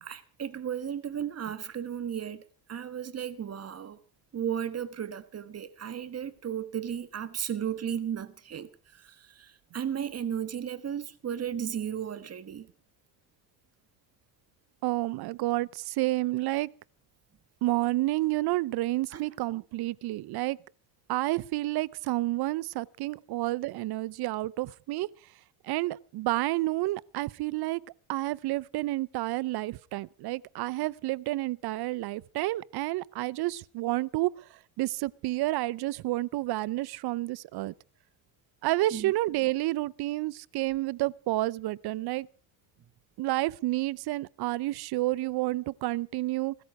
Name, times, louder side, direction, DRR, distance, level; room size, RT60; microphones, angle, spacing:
voice 1, 0.0-4.0 4.3-12.7 19.1-19.3 38.9-39.1 45.2-45.3, right 9 dB, 30° right, 1.5 m, -35 dB
voice 2, 14.8-16.7 17.6-20.6 21.1-25.1 25.6-27.8 28.1-34.3 34.8-37.7 38.6-42.3 43.2-46.6, right 18 dB, 55° right, 0.7 m, -30 dB
20.5 x 13.0 x 4.8 m
cardioid pair, 110°, 46 cm